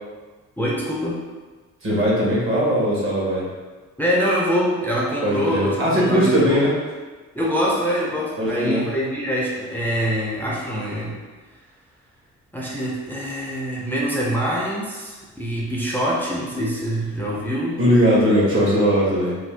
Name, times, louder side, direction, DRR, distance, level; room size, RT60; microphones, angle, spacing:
voice 1, 0.6-1.2 4.0-6.7 7.3-11.2 12.5-17.8, equal, 5° left, -5 dB, 0.5 m, -24 dB
voice 2, 1.8-3.5 5.2-6.7 8.4-8.8 17.8-19.4, equal, 45° right, -5 dB, 1.1 m, -19 dB
2.6 x 2.2 x 3.3 m, 1.3 s
cardioid pair, 90°, 30 cm